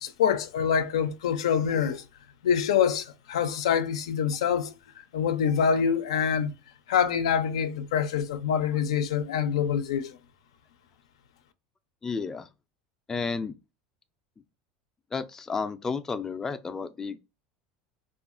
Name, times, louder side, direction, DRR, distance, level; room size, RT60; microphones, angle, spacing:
voice 1, 0.0-2.0 2.4-4.7 5.1-6.5 6.9-10.2, left 7 dB, 90° left, 0.4 m, -25 dB
voice 2, 12.0-12.5 13.1-13.5 15.1-17.2, left 4 dB, 15° left, 0.3 m, -32 dB
2.8 x 2.3 x 2.4 m
supercardioid pair, 110°, 3 cm